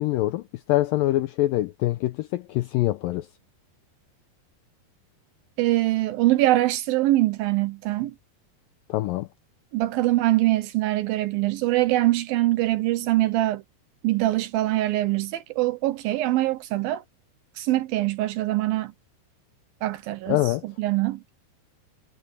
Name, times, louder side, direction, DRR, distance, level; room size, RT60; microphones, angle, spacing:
voice 1, 0.0-3.3 8.9-9.3 20.3-20.6, left 16 dB, 85° left, 2.0 m, -24 dB
voice 2, 5.6-8.1 9.7-13.6 14.0-17.0 17.6-18.9 19.8-21.3, right 16 dB, 75° right, 2.3 m, -23 dB
omnidirectional pair, 4.7 m